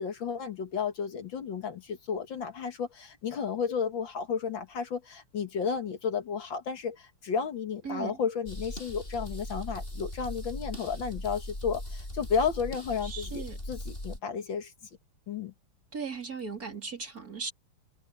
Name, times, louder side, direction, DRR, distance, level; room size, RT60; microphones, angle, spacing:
voice 1, 0.0-14.7 15.3-15.5, left 6 dB, 60° left, 2.2 m, -32 dB
voice 2, 7.8-8.2 13.0-13.6 15.9-17.5, right 5 dB, 40° right, 3.7 m, -37 dB
sound 1, 8.5-14.2, left 1 dB, 25° left, 7.9 m, -39 dB
omnidirectional pair, 2.4 m